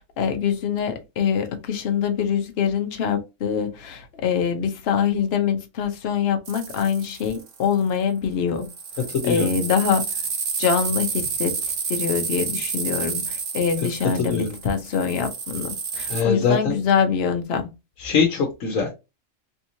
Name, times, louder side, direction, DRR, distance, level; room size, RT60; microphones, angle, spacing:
voice 1, 0.0-8.7 9.2-10.1 10.6-11.6 11.9-17.7, left 7 dB, 55° left, 0.9 m, -24 dB
sound 1, 6.5-7.6 8.6-16.2, right 5 dB, 75° right, 1.2 m, -30 dB
voice 2, 9.1-9.5 14.2-14.5 16.1-16.8 18.0-18.9, left 5 dB, 85° left, 1.2 m, -22 dB
3.5 x 2.9 x 2.6 m
omnidirectional pair, 1.3 m